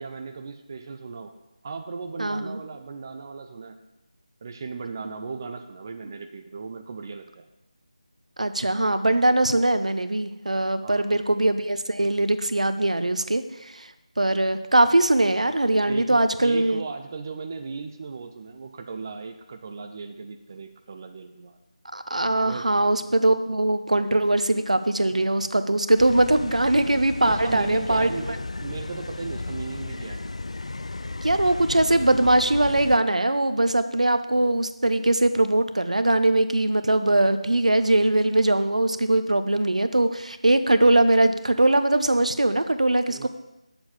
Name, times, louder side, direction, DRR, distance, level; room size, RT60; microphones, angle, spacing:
voice 1, 0.0-1.3 1.6-3.8 4.4-7.5 10.8-11.1 15.9-21.6 22.3-22.7 25.0-25.1 27.3-30.3 43.1-43.3, right 4 dB, 30° right, 5 dB, 0.5 m, -36 dB
voice 2, 2.2-2.6 8.4-13.9 14.2-16.8 21.9-28.1 31.2-43.3, right 1 dB, 75° right, 10 dB, 0.8 m, -21 dB
sound 1, 26.0-33.0, left 2 dB, 65° left, 0.4 m, -34 dB
8.5 x 7.1 x 5.8 m, 0.94 s
figure-of-eight pair, 160°, 4 cm